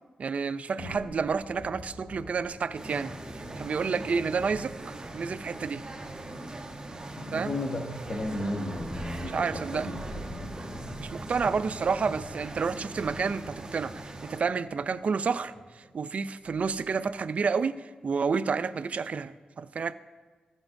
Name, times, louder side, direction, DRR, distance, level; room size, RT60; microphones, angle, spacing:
voice 1, 0.2-5.8 7.3-7.6 9.3-10.0 11.0-19.9, right 5 dB, 55° right, 14 dB, 0.4 m, -30 dB
sound 1, 0.8-17.0, equal, 20° left, 2.7 m, -46 dB
sound 2, 2.7-14.4, right 2 dB, 30° right, 1.0 m, -41 dB
voice 2, 7.2-9.4 9.7-10.0 10.3-10.5, left 1 dB, 50° left, 0 dB, 1.0 m, -34 dB
15.0 x 7.1 x 2.6 m, 1.4 s
cardioid pair, 75°, 3 cm